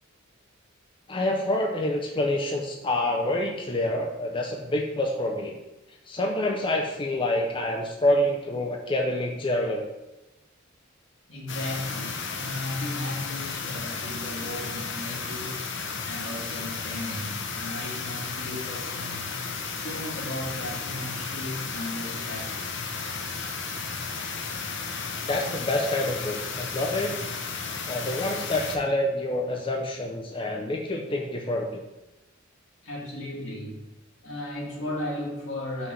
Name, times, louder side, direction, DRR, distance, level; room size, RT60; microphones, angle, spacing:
voice 1, 1.1-5.6 6.1-9.9 25.2-27.3 27.9-31.8, left 1 dB, 25° left, 1 dB, 0.5 m, -27 dB
voice 2, 11.3-15.6 16.0-19.3 19.7-22.7 32.8-33.9 34.2-35.9, left 1 dB, 80° left, -4 dB, 1.8 m, -35 dB
sound 1, 11.5-28.8, left 4 dB, 60° left, 0.7 m, -34 dB
5.6 x 3.2 x 5.4 m, 0.98 s
head